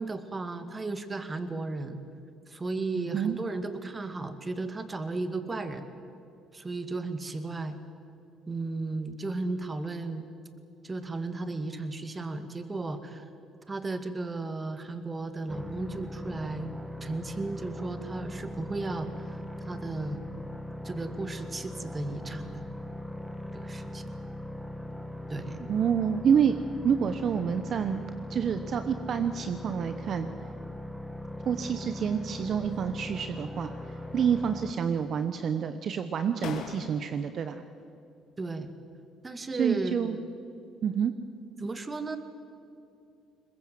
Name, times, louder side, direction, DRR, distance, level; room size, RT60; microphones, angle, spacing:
voice 1, 0.0-2.0 2.5-5.9 6.5-7.8 8.5-10.2 10.8-13.2 13.7-16.7 17.0-19.4 19.7-20.2 20.8-22.6 23.5-24.0 25.3-25.7 38.4-38.7 39.2-40.3 41.6-42.2, right 3 dB, 25° right, 9 dB, 2.2 m, -35 dB
voice 2, 3.0-3.4 25.6-28.0 28.3-30.3 31.4-33.7 34.1-37.6 39.6-40.2 40.8-41.1, right 7 dB, 55° right, 10 dB, 1.0 m, -28 dB
sound 1, 15.5-34.7, left 1 dB, ahead, 1.7 m, -40 dB
sound 2, 32.5-33.1 33.5-34.3 34.6-35.3 36.0-36.1 36.4-37.4, left 7 dB, 70° left, 2.3 m, -44 dB
22.0 x 21.0 x 7.7 m, 2.6 s
supercardioid pair, 65°, 0 cm